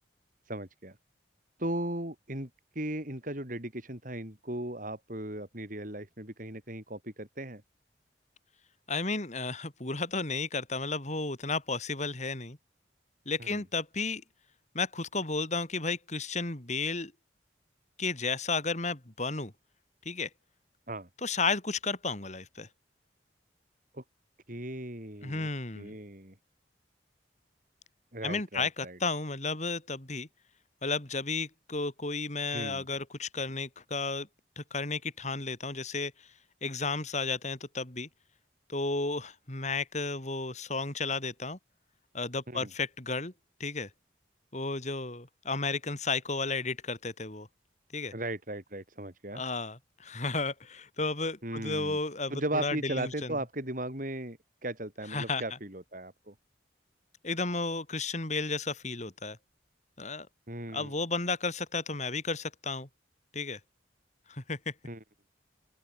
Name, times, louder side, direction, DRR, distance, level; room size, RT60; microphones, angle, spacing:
voice 1, 0.5-1.0 1.6-2.5 2.7-7.6 13.4-13.6 20.9-21.1 23.9-24.0 24.5-25.5 25.8-26.3 28.1-29.0 32.5-32.8 42.5-42.7 48.1-49.4 51.4-52.0 52.3-56.3 60.5-60.9 64.8-65.0, right 1 dB, 45° right, 5.2 m, -37 dB
voice 2, 8.9-12.6 13.2-14.2 14.7-17.1 18.0-19.5 20.0-20.3 21.2-22.7 25.2-25.9 28.2-30.3 30.8-34.3 34.6-36.3 36.6-38.1 38.7-41.6 42.1-43.3 43.6-43.9 44.5-47.5 47.9-48.1 49.3-53.4 55.1-55.4 57.2-59.4 60.0-60.3 60.7-62.9 63.3-63.6 64.3-64.7, left 3 dB, 40° left, 3.1 m, -33 dB
open air
head